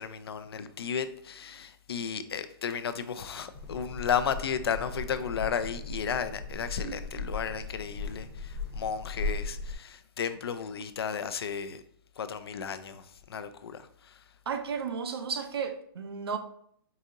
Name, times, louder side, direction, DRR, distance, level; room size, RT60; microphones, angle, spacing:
voice 1, 0.0-11.8 12.2-14.2, left 7 dB, 90° left, 0.4 m, -34 dB
sound 1, 3.5-9.8, left 3 dB, 20° left, 0.7 m, -37 dB
voice 2, 6.8-7.3 14.5-16.4, right 6 dB, 85° right, 0.6 m, -34 dB
4.8 x 2.7 x 2.6 m
hypercardioid pair, 165°, 13 cm